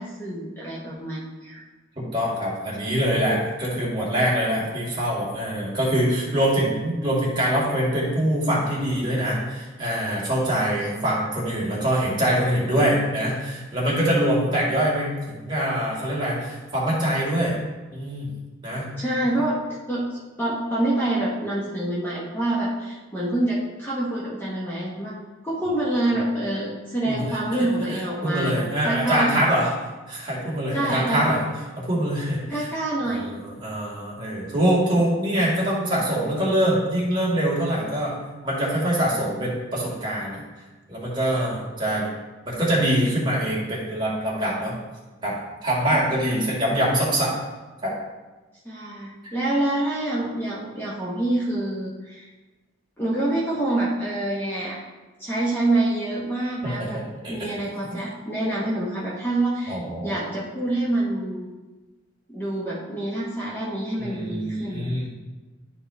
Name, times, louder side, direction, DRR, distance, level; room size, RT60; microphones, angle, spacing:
voice 1, 0.0-1.6 2.8-3.0 12.4-12.5 19.0-25.1 25.4-29.6 30.7-31.3 32.5-33.3 48.6-52.3 53.0-54.8 55.2-57.0 57.3-61.5 62.3-65.0, right 1 dB, 10° left, -6 dB, 1.0 m, -26 dB
voice 2, 2.0-17.6 17.9-18.3 18.6-18.9 19.2-19.3 27.0-29.7 30.1-31.4 31.8-32.7 33.1-40.4 40.9-42.1 42.4-44.7 45.2-45.4 45.6-47.3 47.8-47.9 49.2-49.3 56.6-57.4 57.9-58.0 59.7-60.2 64.0-65.1, right 1 dB, 25° right, -6 dB, 2.1 m, -24 dB
11.0 x 4.3 x 3.4 m, 1.2 s
head